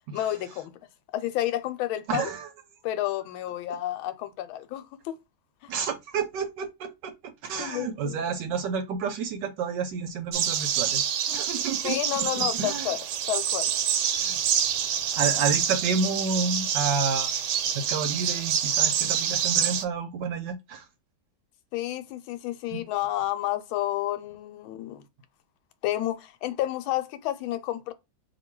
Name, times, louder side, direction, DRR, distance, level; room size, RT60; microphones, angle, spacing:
voice 1, 0.1-0.7 1.1-2.3 2.8-5.1 5.6-5.7 7.6-8.4 11.8-13.7 21.7-25.0 25.8-27.9, left 13 dB, 85° left, 1.4 m, -30 dB
voice 2, 2.1-2.5 5.7-11.0 11.3-12.9 14.2-14.4 14.9-17.4 17.7-20.9 22.7-22.8, right 5 dB, 70° right, 1.2 m, -30 dB
sound 1, 10.3-19.9, right 9 dB, 85° right, 1.4 m, -27 dB
2.9 x 2.7 x 4.3 m
omnidirectional pair, 2.2 m